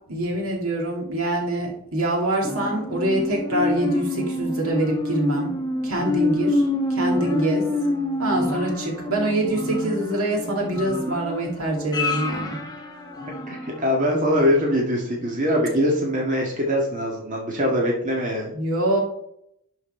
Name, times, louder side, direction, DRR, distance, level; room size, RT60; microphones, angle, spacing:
voice 1, 0.1-5.5 5.8-6.6 6.9-7.7 8.2-12.6 18.5-19.0, right 1 dB, 75° right, -1 dB, 2.6 m, -25 dB
sound 1, 2.4-13.9 14.3-14.4, left 2 dB, 20° left, 1.2 m, -27 dB
voice 2, 13.5-18.5, equal, 35° right, -2 dB, 1.8 m, -22 dB
11.5 x 4.7 x 4.5 m, 0.73 s
head